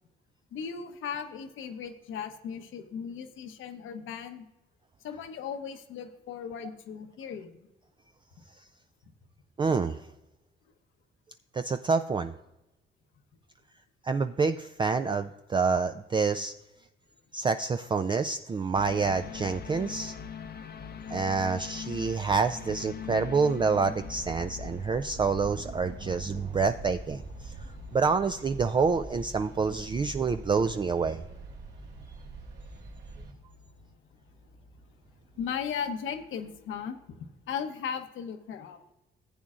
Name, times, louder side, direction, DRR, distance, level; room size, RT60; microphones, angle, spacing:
voice 1, 0.5-4.5 5.0-7.7 35.4-38.8, left 7 dB, 80° left, 7 dB, 1.0 m, -37 dB
voice 2, 9.6-10.0 11.5-12.3 14.0-16.5 17.3-20.2 21.1-27.6 27.9-31.2, right 5 dB, 25° right, 9 dB, 0.3 m, -27 dB
sound 1, 18.7-37.2 37.5-37.6, left 6 dB, 50° left, 0.6 m, -44 dB
sound 2, 24.0-33.3, right 3 dB, 60° right, 3.0 m, -45 dB
15.0 x 8.6 x 2.5 m, 0.96 s
cardioid pair, 90°, 20 cm